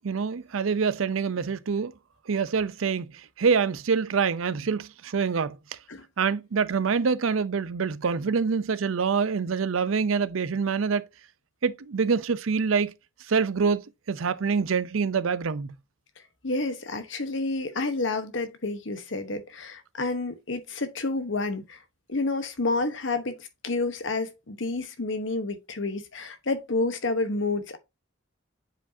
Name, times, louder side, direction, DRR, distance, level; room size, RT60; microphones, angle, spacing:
voice 1, 0.0-1.9 2.3-5.6 6.2-11.1 11.6-12.9 13.3-15.7, right 5 dB, 90° right, 0.5 m, -26 dB
voice 2, 16.4-21.8 22.1-27.8, left 3 dB, 65° left, 1.0 m, -29 dB
7.8 x 4.9 x 2.7 m
head